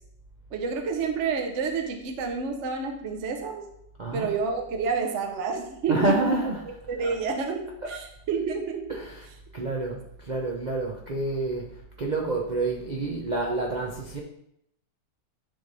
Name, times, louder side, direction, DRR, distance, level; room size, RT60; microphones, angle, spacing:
voice 1, 0.5-3.6 4.1-6.4 6.9-8.9, right 5 dB, 55° right, 3 dB, 0.9 m, -29 dB
voice 2, 4.0-4.3 5.9-7.1 7.8-8.0 8.9-14.2, right 2 dB, 80° right, -1 dB, 0.4 m, -29 dB
10.0 x 3.3 x 4.0 m, 0.77 s
omnidirectional pair, 1.9 m